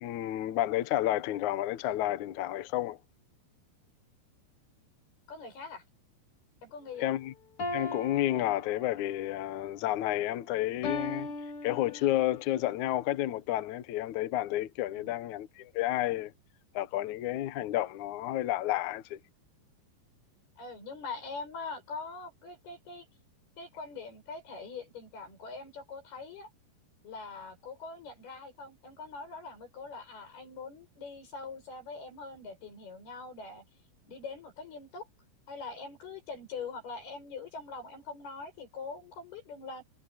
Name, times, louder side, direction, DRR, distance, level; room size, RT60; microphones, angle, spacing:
voice 1, 0.0-3.0 7.0-7.3 7.7-11.3 11.6-16.3 16.7-19.2, left 14 dB, 80° left, 1.7 m, -31 dB
voice 2, 5.3-5.8 6.6-7.1 14.9-15.1 20.6-23.1 23.6-26.5 27.0-33.6 34.1-35.1 35.5-39.8, left 4 dB, 60° left, 9.9 m, -43 dB
sound 1, 7.6-9.2 10.8-12.3, left 3 dB, 35° left, 2.8 m, -38 dB
omnidirectional pair, 5.0 m